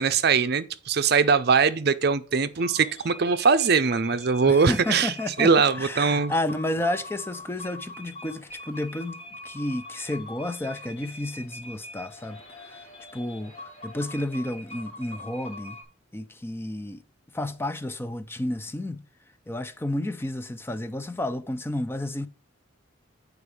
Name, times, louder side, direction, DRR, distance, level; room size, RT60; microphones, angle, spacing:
voice 1, 0.0-6.3, right 5 dB, 55° right, 0.6 m, -22 dB
sound 1, 2.6-15.8, left 1 dB, 30° left, 2.9 m, -43 dB
voice 2, 4.5-5.5 5.8-12.9 13.1-15.8 16.1-17.0 17.3-19.0 19.5-22.3, left 1 dB, 10° left, 0.4 m, -31 dB
8.7 x 4.8 x 4.8 m
head